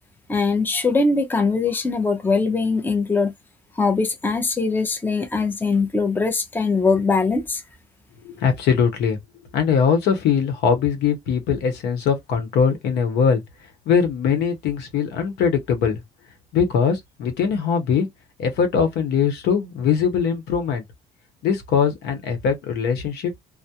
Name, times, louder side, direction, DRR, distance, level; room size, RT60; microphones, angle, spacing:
voice 1, 0.3-3.3 3.8-7.6, left 4 dB, 10° left, 0.6 m, -21 dB
voice 2, 8.2-9.2 9.5-13.4 13.9-16.0 16.5-18.1 18.4-20.8 21.4-23.3, left 6 dB, 80° left, 0.9 m, -21 dB
2.2 x 2.0 x 2.8 m
cardioid pair, 110°, 17 cm